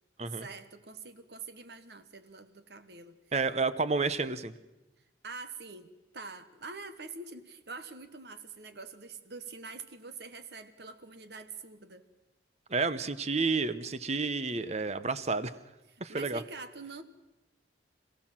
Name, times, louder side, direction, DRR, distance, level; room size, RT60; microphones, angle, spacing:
voice 1, 0.3-3.2 5.2-12.0 15.9-17.0, right 4 dB, 60° right, 10 dB, 1.4 m, -45 dB
voice 2, 3.3-4.5 12.7-15.5 16.0-16.4, right 4 dB, 35° right, 14 dB, 0.8 m, -30 dB
26.5 x 16.0 x 7.5 m, 1.0 s
head